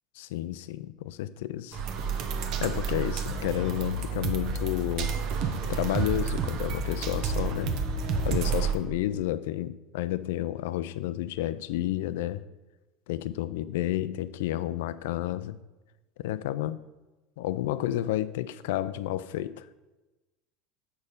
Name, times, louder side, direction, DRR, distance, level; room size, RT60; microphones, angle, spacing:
voice 1, 0.2-1.8 2.6-5.1 5.7-7.8 8.2-12.4 13.1-15.6 16.2-16.8 17.4-19.7, left 14 dB, 75° left, 16 dB, 0.3 m, -31 dB
sound 1, 1.7-8.7, right 4 dB, 60° right, 0.9 m, -30 dB
6.9 x 4.4 x 5.1 m, 1.1 s
hypercardioid pair, 95°, 0 cm